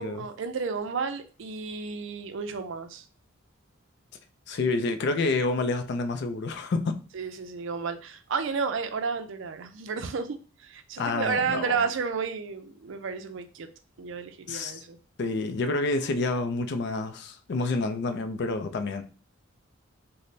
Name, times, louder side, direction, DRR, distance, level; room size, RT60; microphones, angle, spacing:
voice 1, 0.0-3.0 7.1-13.7 14.0-15.0, right 5 dB, 60° right, 0.4 m, -32 dB
voice 2, 4.5-7.0 11.0-11.9 14.5-14.8 15.2-19.0, left 3 dB, 55° left, 0.4 m, -28 dB
4.0 x 2.1 x 3.2 m
head